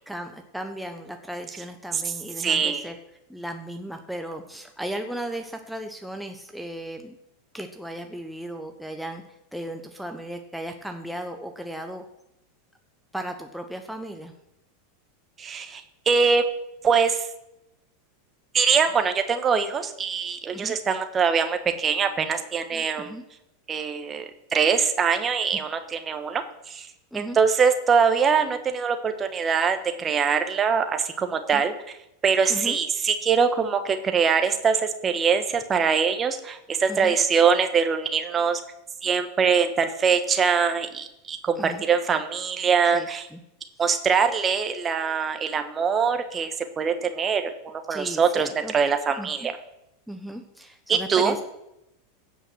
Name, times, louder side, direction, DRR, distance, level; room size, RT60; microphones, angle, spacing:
voice 1, 0.1-2.9 3.3-7.2 7.5-9.2 9.5-12.0 13.1-14.3 20.5-20.7 22.7-23.2 27.1-27.4 31.5-31.6 32.5-32.8 36.9-37.2 41.6-41.8 42.9-43.4 47.9-48.7 49.2-49.3 50.1-51.4, right 1 dB, ahead, 4 dB, 1.0 m, -36 dB
voice 2, 2.4-2.9 15.4-16.4 16.8-17.3 18.5-23.1 23.7-24.2 24.5-26.9 27.1-31.7 32.2-38.6 39.0-43.3 43.8-49.6 50.9-51.4, right 6 dB, 25° right, 7 dB, 1.4 m, -23 dB
16.0 x 5.5 x 6.2 m, 0.87 s
figure-of-eight pair, 90°, 0 cm